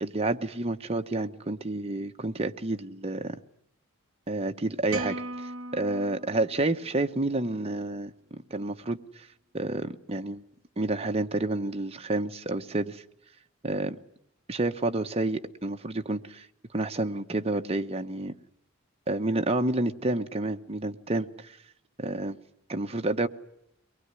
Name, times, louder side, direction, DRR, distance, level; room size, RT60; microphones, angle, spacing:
voice 1, 0.0-3.4 4.3-5.2 5.7-8.1 8.5-9.3 9.5-10.4 10.8-13.0 13.6-14.0 14.5-16.5 16.7-18.4 19.1-21.6 22.0-22.4 22.7-23.3, right 2 dB, 30° right, 5 dB, 1.0 m, -29 dB
sound 1, 4.9-7.3, right 2 dB, 70° right, 1.1 m, -38 dB
23.0 x 20.0 x 9.7 m, 0.77 s
head